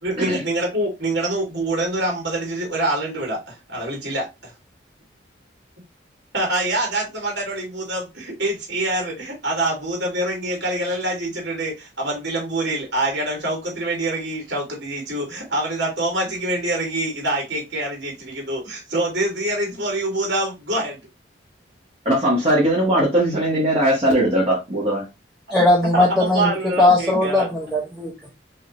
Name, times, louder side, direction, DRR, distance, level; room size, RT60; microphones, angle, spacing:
voice 1, 0.0-4.2 6.3-21.0 25.9-27.5, right 1 dB, 65° right, 2.5 m, -25 dB
voice 2, 22.0-25.0, right 1 dB, 30° right, 1.6 m, -19 dB
voice 3, 25.5-26.5 26.8-28.3, left 2 dB, 5° left, 1.0 m, -18 dB
5.5 x 2.9 x 3.0 m
head